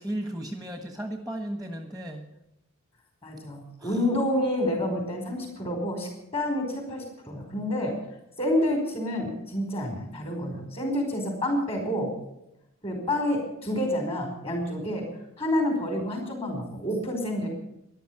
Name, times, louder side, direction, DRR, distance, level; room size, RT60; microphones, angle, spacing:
voice 1, 0.0-2.2 3.8-4.0, right 1 dB, ahead, 6 dB, 1.5 m, -35 dB
voice 2, 3.2-7.9 8.4-12.1 12.8-15.1 15.4-17.5, left 1 dB, 25° left, 3 dB, 5.0 m, -28 dB
14.0 x 11.5 x 8.8 m, 0.84 s
head